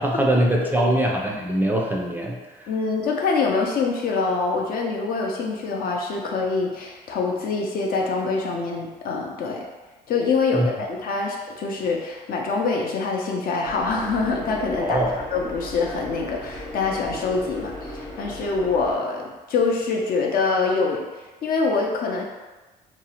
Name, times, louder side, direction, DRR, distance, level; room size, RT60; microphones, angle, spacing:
voice 1, 0.0-2.4 10.5-10.7 14.8-15.2, right 1 dB, 10° right, -1 dB, 0.4 m, -22 dB
voice 2, 0.6-0.9 2.7-9.6 10.1-15.0 15.3-22.2, left 4 dB, 55° left, 0 dB, 0.5 m, -25 dB
sound 1, 13.6-18.9, equal, 15° left, 0.7 m, -37 dB
2.6 x 2.0 x 2.7 m, 1.2 s
cardioid pair, 90°, 18 cm